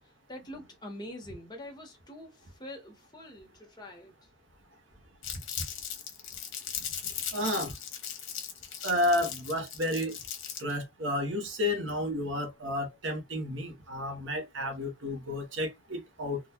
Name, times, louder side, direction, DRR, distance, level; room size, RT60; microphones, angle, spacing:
voice 1, 0.3-4.1, left 1 dB, 20° left, 0.9 m, -45 dB
Crumpling crinkling, 5.2-10.8, left 8 dB, 85° left, 1.0 m, -38 dB
voice 2, 7.3-7.7 8.8-10.2 10.6-16.4, left 1 dB, 65° right, 0.9 m, -31 dB
3.7 x 2.3 x 2.8 m
head